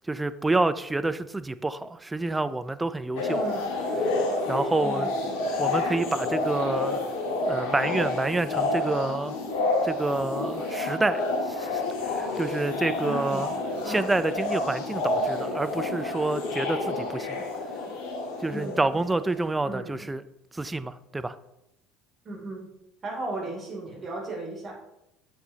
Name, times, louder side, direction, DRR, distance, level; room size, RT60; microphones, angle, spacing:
voice 1, 0.1-3.4 4.5-5.1 5.6-7.0 7.5-9.4 9.8-13.5 13.8-17.4 18.4-20.2 20.5-21.4, right 2 dB, 10° right, 0.4 m, -28 dB
sound 1, 3.2-19.3, left 2 dB, 55° left, 1.6 m, -29 dB
voice 2, 3.3-3.7 4.8-5.3 13.0-14.0 18.5-18.8 19.6-20.1 22.2-22.7 23.0-24.7, right 2 dB, 35° right, 2.8 m, -36 dB
8.0 x 7.8 x 2.8 m
figure-of-eight pair, 60°, 0 cm